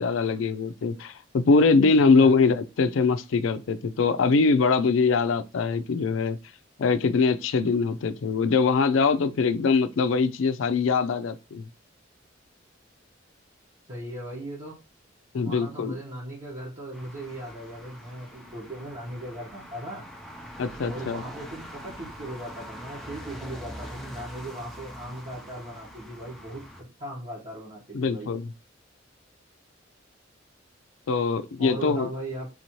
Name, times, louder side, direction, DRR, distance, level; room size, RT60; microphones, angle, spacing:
voice 1, 0.0-6.4 6.8-11.6 15.3-15.9 20.6-21.2 27.9-28.5 31.1-32.1, left 4 dB, 80° left, 0.4 m, -23 dB
voice 2, 1.9-2.3 13.9-14.8 15.4-20.1 20.8-28.3 31.6-32.5, right 1 dB, 40° right, 1.2 m, -38 dB
sound 1, 16.9-26.8, equal, ahead, 0.7 m, -43 dB
4.2 x 2.7 x 3.0 m
head